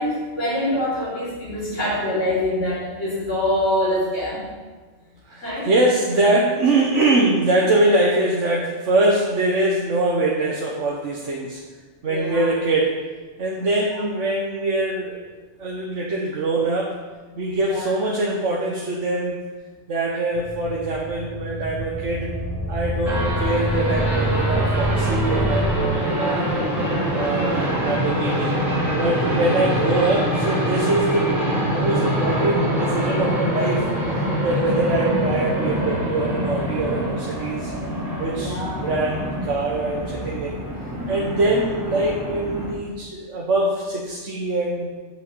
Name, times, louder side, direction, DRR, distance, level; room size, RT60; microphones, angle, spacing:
voice 1, 0.0-4.4 5.4-5.7 12.1-12.5 13.9-14.0 17.6-17.9 29.0-29.3 34.6-34.7 38.3-38.9, left 1 dB, 80° left, -11 dB, 4.3 m, -25 dB
voice 2, 5.3-11.6 12.0-13.0 13.4-15.2 15.6-16.9 17.4-19.4 19.9-22.4 22.7-26.5 27.1-28.6 28.9-37.7 38.2-40.6 41.1-44.9, right 2 dB, 80° right, -3 dB, 1.5 m, -23 dB
sound 1, 20.4-25.7, right 1 dB, 15° left, 1.0 m, -26 dB
sound 2, 23.0-42.7, equal, ahead, 2.9 m, -25 dB
8.2 x 6.3 x 7.1 m, 1.3 s
omnidirectional pair, 1.2 m